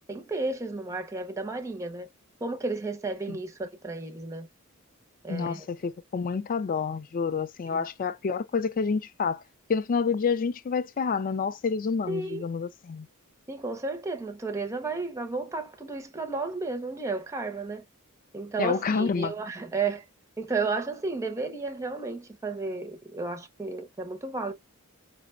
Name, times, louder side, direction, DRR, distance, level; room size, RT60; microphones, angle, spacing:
voice 1, 0.1-2.1 2.4-4.5 5.2-5.7 7.7-7.9 12.1-12.4 13.5-17.8 18.3-20.1 20.4-24.5, right 3 dB, 15° right, 0.5 m, -33 dB
voice 2, 5.3-9.4 9.7-13.1 18.6-19.3, left 5 dB, 40° left, 0.4 m, -28 dB
4.9 x 2.1 x 2.3 m
head